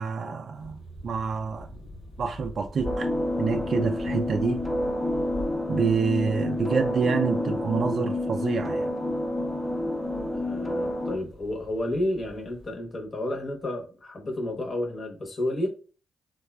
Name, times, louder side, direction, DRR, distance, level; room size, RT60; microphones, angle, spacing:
voice 1, 0.0-1.7 2.2-3.1 3.4-4.6 5.7-8.9, right 5 dB, 60° right, 0.3 m, -27 dB
sound 1, 0.5-12.7, left 1 dB, 80° left, 1.1 m, -45 dB
sound 2, 2.8-11.2, left 1 dB, ahead, 0.5 m, -29 dB
voice 2, 10.3-15.7, left 1 dB, 45° left, 0.8 m, -31 dB
3.4 x 2.3 x 2.2 m
supercardioid pair, 55°, 0 cm